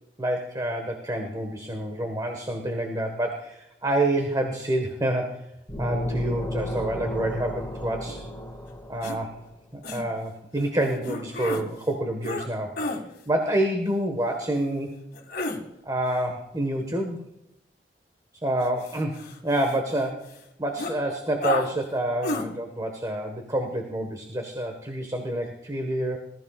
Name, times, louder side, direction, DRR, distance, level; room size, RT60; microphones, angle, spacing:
voice 1, 0.2-5.4 5.8-8.2 8.9-9.4 9.7-12.7 13.2-14.9 15.8-17.2 18.4-26.2, right 1 dB, 20° right, 3 dB, 1.6 m, -28 dB
sound 1, 5.7-9.4, left 1 dB, 10° left, 1.8 m, -32 dB
sound 2, 9.0-9.2 9.8-10.0 11.0-11.6 12.2-12.5 12.8-13.0 15.1-15.6 18.6-20.0 20.3-20.4 20.8-20.9 21.4-21.7 22.2-22.5, left 2 dB, 60° left, 2.3 m, -30 dB
20.0 x 14.5 x 2.5 m, 0.82 s
head